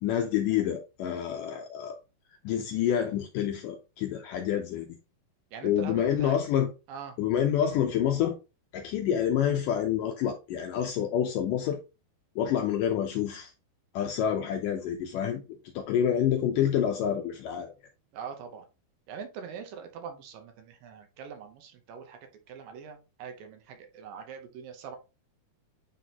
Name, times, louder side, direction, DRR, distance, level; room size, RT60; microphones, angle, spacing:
voice 1, 0.0-2.0 2.4-5.0 5.6-6.7 7.2-8.4 8.7-11.8 12.4-13.5 13.9-15.4 15.8-17.7, left 9 dB, 80° left, 1.9 m, -27 dB
voice 2, 5.5-6.4 6.9-7.2 18.1-18.7 19.1-22.2 22.5-25.0, right 7 dB, 75° right, 2.4 m, -42 dB
9.1 x 3.8 x 2.9 m
omnidirectional pair, 4.4 m